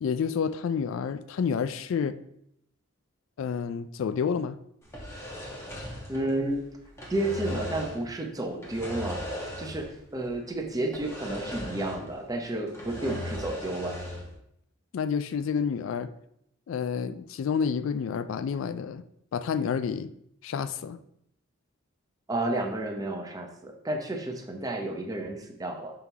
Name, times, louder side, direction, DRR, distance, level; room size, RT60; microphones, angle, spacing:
voice 1, 0.0-2.2 3.4-4.6 14.9-16.1 16.7-19.0 19.3-20.1 20.4-21.0, left 6 dB, 65° left, 13 dB, 0.3 m, -29 dB
sound 1, 4.8-6.6 6.8-8.1 8.6-10.0 10.2-10.3 10.9-12.2 12.5-14.3, equal, 15° left, 1.2 m, -37 dB
voice 2, 6.1-6.6 7.1-9.3 9.6-13.9 22.3-25.9, right 1 dB, 15° right, 2 dB, 0.8 m, -31 dB
5.8 x 3.6 x 4.6 m, 0.75 s
head